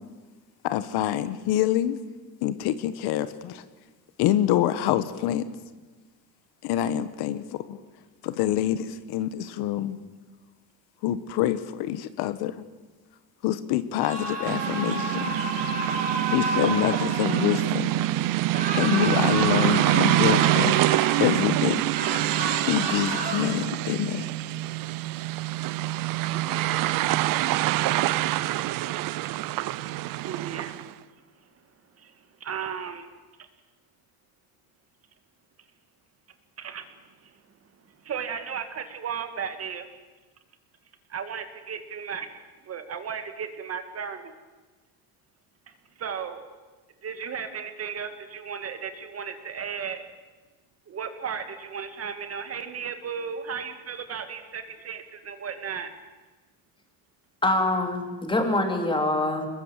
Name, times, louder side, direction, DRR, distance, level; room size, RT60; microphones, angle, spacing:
voice 1, 0.6-2.0 2.4-3.6 4.2-5.4 6.6-7.8 8.2-10.0 11.0-12.6 13.4-15.2 16.3-18.0 18.8-20.8 21.2-21.8 22.7-24.3, left 12 dB, 70° left, 13 dB, 1.3 m, -26 dB
sound 1, 14.0-17.6 18.5-21.5 21.9-23.4, right 2 dB, 20° right, 4.5 m, -31 dB
sound 2, 14.5-30.9, right 16 dB, 55° right, 0.7 m, -25 dB
voice 2, 26.2-27.0 30.2-31.5 32.0-33.1 36.6-37.4 38.0-39.9 41.1-44.3 45.7-46.5 47.0-50.0 50.9-55.9, right 7 dB, 35° right, 8 dB, 2.1 m, -35 dB
voice 3, 57.4-59.5, left 2 dB, 10° left, 4 dB, 3.3 m, -24 dB
23.5 x 21.0 x 7.5 m, 1.3 s
cardioid pair, 135°, 40 cm